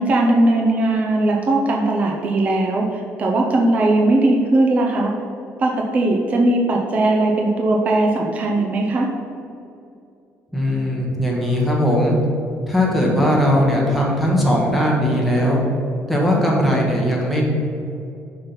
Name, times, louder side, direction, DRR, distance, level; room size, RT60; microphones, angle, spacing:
voice 1, 0.0-5.1 5.6-9.1, right 2 dB, 30° right, 0 dB, 0.5 m, -18 dB
voice 2, 10.5-12.2 12.7-15.6 16.1-17.4, equal, ahead, -3 dB, 1.0 m, -19 dB
5.6 x 4.3 x 5.2 m, 2.6 s
cardioid pair, 175°, 5 cm